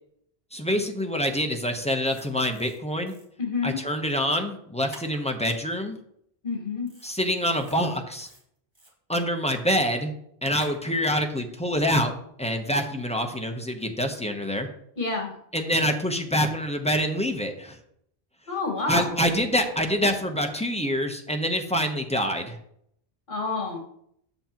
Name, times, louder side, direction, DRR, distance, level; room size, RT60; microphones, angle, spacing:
voice 1, 0.5-3.1 3.6-6.0 7.0-8.3 9.1-10.1 10.4-12.1 12.4-14.7 15.5-17.8 18.9-22.6, equal, 5° left, 3 dB, 0.7 m, -26 dB
sound 1, 2.0-2.8 3.1-3.2 4.9-5.2 6.9-7.1 7.5-7.8 8.2-8.9 10.6-10.8, right 1 dB, 25° right, 1.7 m, -48 dB
voice 2, 3.4-3.8 6.4-6.9 15.0-15.3 18.5-19.1 23.3-23.8, left 3 dB, 55° left, 1 dB, 1.8 m, -28 dB
8.0 x 7.3 x 2.9 m, 0.71 s
omnidirectional pair, 1.1 m